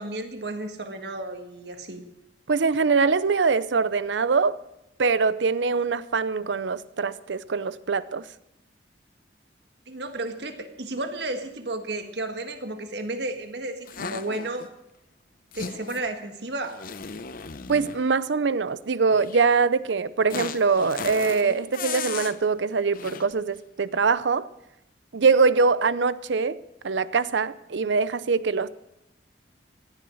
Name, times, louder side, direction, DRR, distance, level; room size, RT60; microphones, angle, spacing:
voice 1, 0.0-2.0 9.9-14.7 15.5-16.8, right 2 dB, 65° right, 1.7 m, -33 dB
voice 2, 2.5-4.6 5.0-8.2 17.7-24.5 25.1-26.6 26.8-28.7, right 4 dB, 85° right, 0.6 m, -23 dB
sound 1, 13.9-14.7 15.5-16.1 16.6-18.1 19.1-19.4 20.3-22.4 22.9-23.3, left 6 dB, 50° left, 0.7 m, -36 dB
16.0 x 11.0 x 6.3 m
head